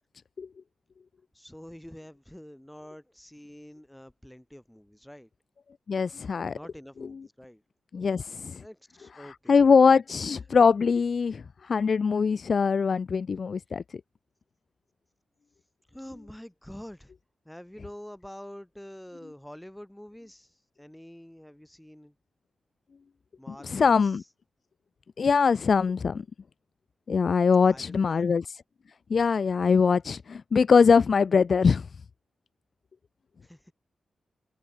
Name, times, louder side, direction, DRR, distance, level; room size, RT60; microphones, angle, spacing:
voice 1, 1.3-5.3 6.5-7.6 7.9-8.2 8.6-10.2 15.9-17.1 17.4-22.1 23.4-24.2 27.6-28.4 33.4-33.7, equal, 5° left, 2.8 m, -47 dB
voice 2, 5.9-6.6 7.9-8.6 9.5-13.8 23.6-24.2 25.2-26.2 27.1-28.4 29.1-31.9, left 5 dB, 45° left, 0.4 m, -22 dB
wide cardioid pair, 175°, 0 cm